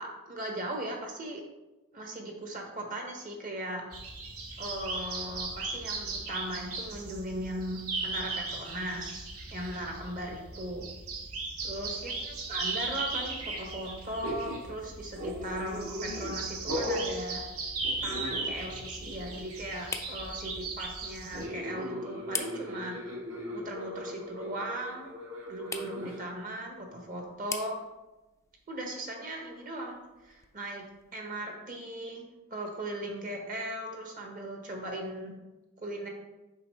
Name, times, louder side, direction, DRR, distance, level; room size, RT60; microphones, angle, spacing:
voice 1, 0.0-1.4 1.9-3.8 4.6-10.9 11.6-17.4 18.0-23.0 23.5-25.1 25.5-27.8 28.7-30.8 31.1-32.2 32.5-35.3 35.8-36.1, right 1 dB, 40° right, 1 dB, 1.1 m, -38 dB
sound 1, 3.9-21.5, right 3 dB, 85° right, 1.0 m, -37 dB
sound 2, 14.2-14.7 15.1-16.3 16.7-17.1 17.8-18.8 19.0-19.3 21.3-26.2, left 1 dB, 65° right, 1.7 m, -38 dB
sound 3, 16.3-31.1, left 5 dB, 15° left, 0.3 m, -46 dB
6.7 x 4.7 x 3.2 m, 1.0 s
head